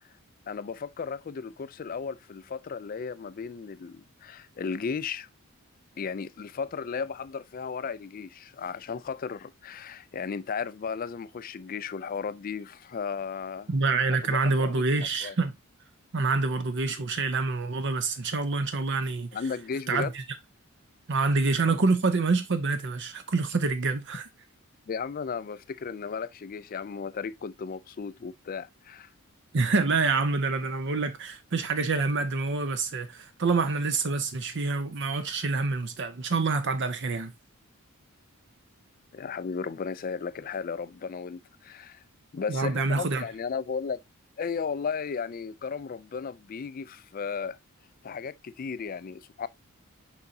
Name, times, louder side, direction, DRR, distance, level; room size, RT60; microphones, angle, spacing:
voice 1, 0.5-5.3 6.0-13.7 14.2-15.4 19.3-20.1 24.9-29.1 39.1-42.0 42.3-44.0 44.4-47.6 48.0-49.5, left 5 dB, 40° left, 0.3 m, -35 dB
voice 2, 13.7-15.5 16.1-19.3 19.9-20.2 21.1-24.2 29.5-37.3 42.5-43.2, right 3 dB, 55° right, 0.6 m, -27 dB
7.0 x 5.1 x 2.7 m
head